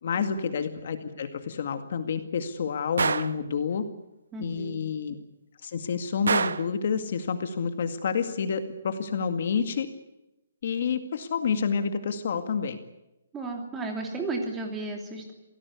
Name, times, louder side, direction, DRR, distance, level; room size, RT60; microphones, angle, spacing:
voice 1, 0.0-3.8 4.4-5.2 5.6-9.9 10.6-12.8, left 6 dB, 45° left, 8 dB, 2.0 m, -29 dB
Gunshot gunfire, 3.0-3.4 6.3-6.7, right 5 dB, 80° right, 1.1 m, -25 dB
voice 2, 4.3-4.8 13.3-15.3, right 3 dB, 10° right, 2 dB, 2.9 m, -34 dB
27.0 x 18.5 x 8.3 m, 0.95 s
hypercardioid pair, 175°, 0 cm